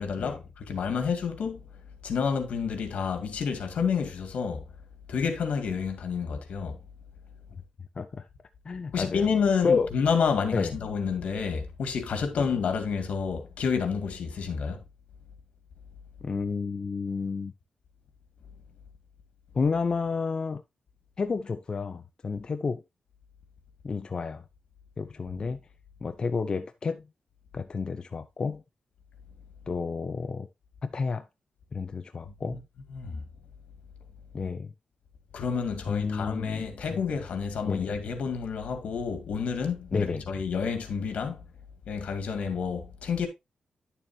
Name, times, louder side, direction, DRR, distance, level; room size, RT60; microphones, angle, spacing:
voice 1, 0.0-1.6 2.0-4.6 5.1-6.8 8.9-14.8 32.3-32.6 32.9-33.2 35.3-41.4 41.9-43.3, left 6 dB, 80° left, 2.2 m, -29 dB
voice 2, 8.0-8.3 8.7-9.3 9.6-9.9 10.5-10.7 12.4-12.5 16.2-17.5 19.5-20.6 21.2-22.8 23.8-24.4 25.0-25.6 26.0-27.0 27.5-28.6 29.7-30.5 30.8-31.2 31.7-32.6 34.3-34.7 35.9-36.6 36.9-37.0 37.6-37.9 39.9-40.3, left 4 dB, 40° left, 0.6 m, -30 dB
10.5 x 7.0 x 2.8 m
wide cardioid pair, 130°, 2 cm